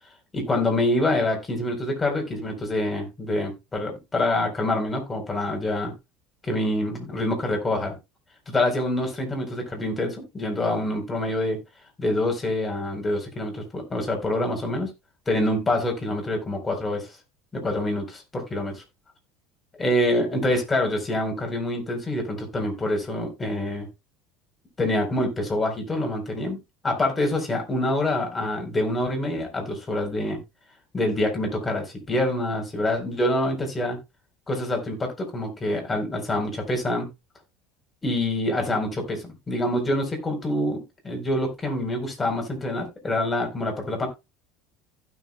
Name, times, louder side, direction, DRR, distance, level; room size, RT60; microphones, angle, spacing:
voice 1, 0.3-5.9 6.4-7.9 8.5-11.6 12.0-14.9 15.3-17.1 17.5-18.8 19.7-23.9 24.8-30.4 30.9-34.0 34.5-37.1 38.0-44.1, left 1 dB, 20° left, 4.0 m, -26 dB
15.5 x 6.4 x 2.3 m
hypercardioid pair, 70°, 0 cm